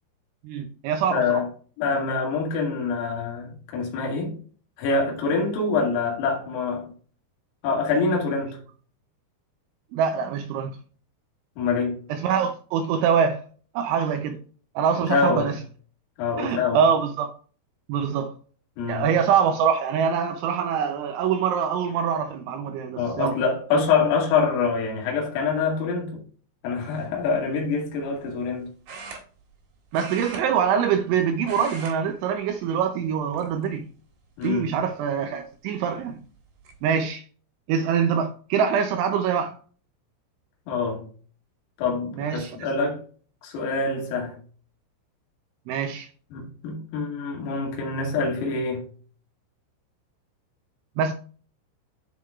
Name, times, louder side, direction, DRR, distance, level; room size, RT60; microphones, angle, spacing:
voice 1, 0.4-1.4 9.9-10.8 12.1-13.4 13.8-14.4 14.8-15.6 16.4-17.3 17.9-18.3 18.9-23.4 29.9-33.9 34.4-36.2 36.8-37.2 37.7-39.6 42.2-42.9 45.7-46.1 51.0-51.1, right 7 dB, 80° right, 2.8 m, -24 dB
voice 2, 1.1-1.5 1.8-4.4 4.8-6.9 7.6-8.6 11.6-12.0 15.0-15.5 16.2-16.8 18.8-19.1 23.0-26.2 26.6-28.7 34.4-34.8 40.7-41.1 41.8-43.0 43.4-44.4 46.3-48.9, left 4 dB, 80° left, 4.7 m, -25 dB
sound 1, 26.9-27.2 28.9-29.6 29.9-31.1 31.4-32.0 32.3-32.5 33.3-33.9 34.4-34.5 36.0-36.1 36.4-36.8, right 3 dB, 60° right, 2.8 m, -40 dB
12.5 x 4.6 x 2.4 m
omnidirectional pair, 6.0 m